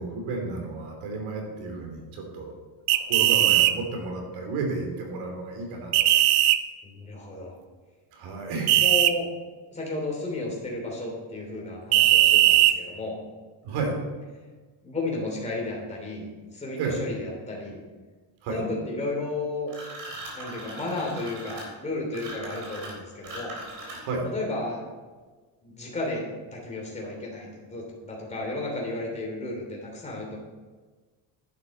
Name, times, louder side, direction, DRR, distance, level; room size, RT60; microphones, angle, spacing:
voice 1, 0.0-2.6 2.9-6.1 8.1-8.9 13.6-13.9 16.8-17.1 18.4-18.6 23.9-24.3, right 3 dB, 70° right, 1 dB, 3.2 m, -32 dB
sound 1, 2.9-3.7 5.9-6.6 8.7-9.1 11.9-12.8, right 14 dB, 90° right, 0.8 m, -18 dB
voice 2, 6.8-7.5 8.8-9.3 9.7-13.2 14.8-16.3 16.5-17.8 18.5-19.7 20.3-23.5 24.2-24.8 25.6-26.2 26.5-30.4, left 2 dB, 15° left, -2 dB, 3.0 m, -33 dB
sound 2, 19.7-24.3, right 1 dB, 40° right, 3.8 m, -40 dB
11.0 x 9.0 x 4.2 m, 1.3 s
cardioid pair, 160°, 49 cm